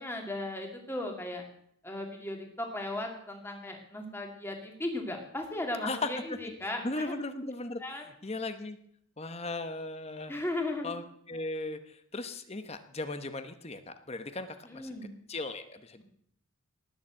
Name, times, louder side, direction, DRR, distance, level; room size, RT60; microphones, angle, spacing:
voice 1, 0.0-1.4 1.8-7.2 7.8-8.0 10.3-11.0 14.6-15.1, left 1 dB, 10° left, 2 dB, 2.3 m, -36 dB
voice 2, 6.8-7.8 8.2-8.8 9.2-10.3 10.8-14.9 15.3-16.0, left 2 dB, 30° left, 9 dB, 1.0 m, -37 dB
18.5 x 7.2 x 7.6 m, 0.68 s
head